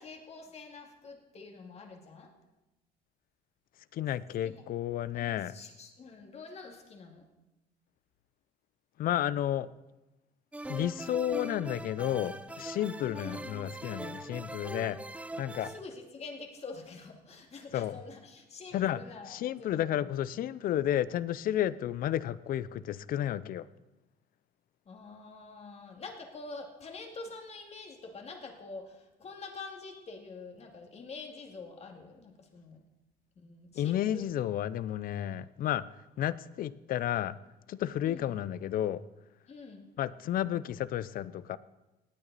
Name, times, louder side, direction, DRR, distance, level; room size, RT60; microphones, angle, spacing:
voice 1, 0.0-2.3 4.4-4.6 5.1-7.3 13.1-13.4 15.6-20.1 24.9-32.8 33.4-34.3 38.0-38.4 39.5-39.9, left 3 dB, 40° left, 2.2 m, -46 dB
voice 2, 3.9-5.5 9.0-9.7 10.7-15.0 15.4-15.7 17.7-18.0 18.7-19.0 19.3-23.7 33.8-35.8 36.2-37.4 37.7-39.0 40.0-41.6, left 11 dB, 60° left, 0.5 m, -32 dB
sound 1, 10.5-15.8, right 2 dB, 5° right, 0.5 m, -42 dB
18.5 x 9.0 x 4.1 m
cardioid pair, 110°, 17 cm